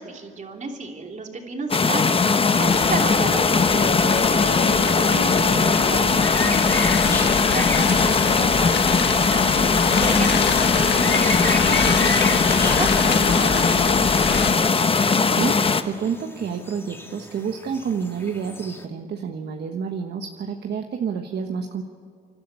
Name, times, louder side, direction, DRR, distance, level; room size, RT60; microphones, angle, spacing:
voice 1, 0.0-2.1 2.5-14.6, right 3 dB, 40° right, 2 dB, 3.1 m, -33 dB
sound 1, 1.7-15.8, left 4 dB, 30° left, 0.9 m, -19 dB
sound 2, 2.7-14.5, left 7 dB, 60° left, 1.3 m, -27 dB
sound 3, 5.3-18.8, left 1 dB, 10° left, 2.0 m, -34 dB
voice 2, 15.3-15.6 15.8-21.8, right 6 dB, 55° right, 4 dB, 1.3 m, -29 dB
29.5 x 12.0 x 8.3 m, 2.2 s
cardioid pair, 90°, 20 cm